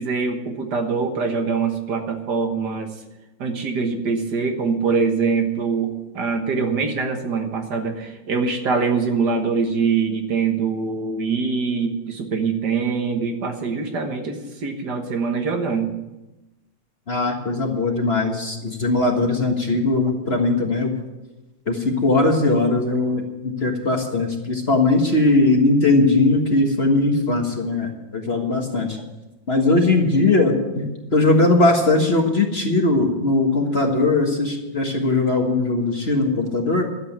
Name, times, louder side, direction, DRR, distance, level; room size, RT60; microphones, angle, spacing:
voice 1, 0.0-2.9 3.4-15.9, right 5 dB, 60° right, 4 dB, 1.9 m, -23 dB
voice 2, 17.1-20.9 21.7-29.0 29.5-36.8, left 2 dB, 35° left, 2 dB, 1.7 m, -19 dB
12.0 x 8.0 x 9.2 m, 1.0 s
omnidirectional pair, 2.0 m